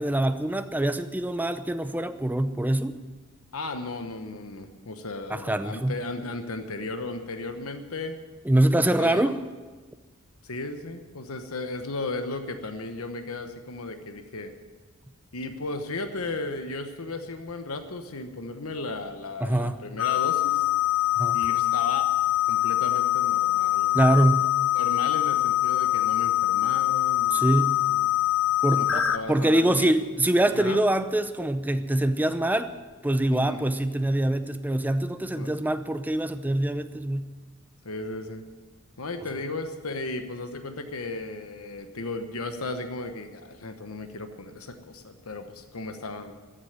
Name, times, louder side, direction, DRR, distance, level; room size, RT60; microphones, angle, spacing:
voice 1, 0.0-3.0 5.3-6.0 8.5-9.4 19.4-19.8 21.2-21.4 23.9-24.5 27.3-27.8 28.6-29.0 29.3-32.7 33.0-37.3, right 1 dB, 10° right, 10 dB, 0.6 m, -24 dB
voice 2, 3.5-8.2 8.8-9.3 10.4-14.5 15.3-20.7 21.3-22.1 22.5-24.3 24.7-28.0 28.7-30.0 30.5-30.8 33.3-33.7 35.3-35.5 37.8-38.5 39.0-46.3, left 2 dB, 85° left, 7 dB, 1.1 m, -35 dB
sound 1, 20.0-29.2, left 15 dB, 65° left, 0.7 m, -24 dB
14.5 x 8.1 x 9.5 m, 1.3 s
head